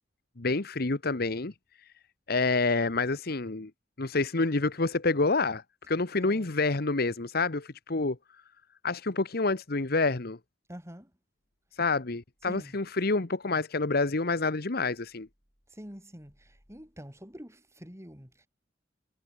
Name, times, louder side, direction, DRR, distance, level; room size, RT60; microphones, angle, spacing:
voice 1, 0.4-1.5 2.3-3.7 4.0-8.2 8.8-10.4 11.7-15.3, left 3 dB, 55° left, 1.2 m, -28 dB
voice 2, 6.2-6.6 10.7-11.1 12.4-12.8 15.7-18.5, equal, 15° right, 6.5 m, -46 dB
head